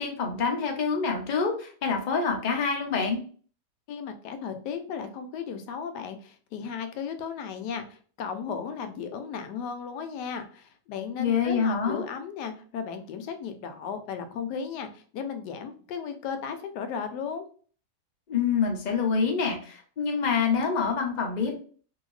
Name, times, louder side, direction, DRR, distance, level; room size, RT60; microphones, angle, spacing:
voice 1, 0.0-3.2 11.2-12.1 18.3-21.5, left 5 dB, 70° left, 2 dB, 0.4 m, -26 dB
voice 2, 3.9-17.4, left 6 dB, 85° left, 7 dB, 1.2 m, -35 dB
2.8 x 2.7 x 3.1 m, 0.44 s
omnidirectional pair, 1.8 m